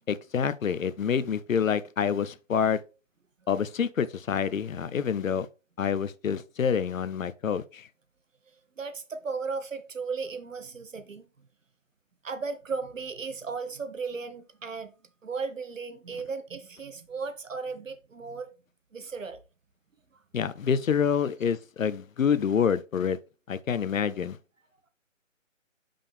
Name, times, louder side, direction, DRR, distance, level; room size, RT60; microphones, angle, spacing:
voice 1, 0.1-2.8 3.5-5.5 5.8-7.9 20.3-23.2 23.5-24.4, left 7 dB, 80° left, 0.7 m, -27 dB
voice 2, 8.8-11.3 12.2-14.9 15.2-18.5 18.9-19.4 20.1-20.2, right 4 dB, 75° right, 1.2 m, -35 dB
5.5 x 5.2 x 3.5 m
hypercardioid pair, 175°, 39 cm